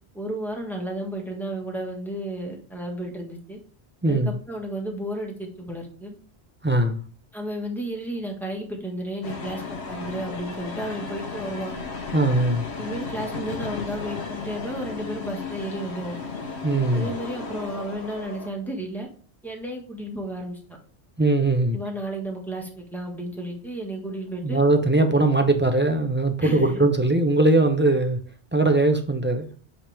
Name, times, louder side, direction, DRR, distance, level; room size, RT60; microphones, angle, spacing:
voice 1, 0.1-3.6 4.1-6.2 7.3-11.7 12.8-16.2 16.9-19.1 19.4-20.6 21.7-24.6 26.4-26.8, right 1 dB, ahead, 1.4 m, -33 dB
voice 2, 4.0-4.4 6.6-7.0 12.1-12.7 16.6-17.1 21.2-21.8 24.4-28.2 28.5-29.5, right 2 dB, 15° right, 0.5 m, -20 dB
sound 1, 9.2-18.5, left 4 dB, 70° left, 1.2 m, -34 dB
8.1 x 3.5 x 3.4 m
omnidirectional pair, 1.1 m